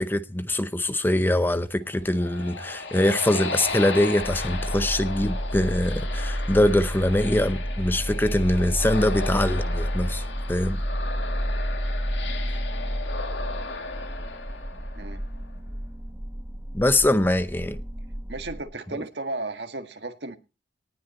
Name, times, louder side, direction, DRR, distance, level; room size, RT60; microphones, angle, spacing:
voice 1, 0.0-10.8 16.7-17.8, left 1 dB, 10° left, 0.6 m, -23 dB
sound 1, 1.8-15.4, left 3 dB, 85° left, 2.0 m, -35 dB
sound 2, 4.2-18.6, equal, 15° right, 1.2 m, -30 dB
voice 2, 18.3-20.4, right 2 dB, 70° right, 1.7 m, -34 dB
19.0 x 8.4 x 4.2 m
head